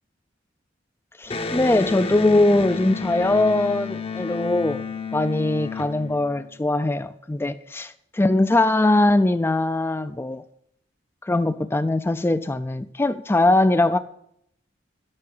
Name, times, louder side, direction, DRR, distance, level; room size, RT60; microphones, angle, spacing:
voice 1, 1.2-4.8 5.1-10.4 11.3-14.0, left 2 dB, 15° left, 0.4 m, -21 dB
Electric guitar, 1.3-6.8, left 4 dB, 30° left, 0.7 m, -31 dB
12.0 x 5.7 x 6.0 m
head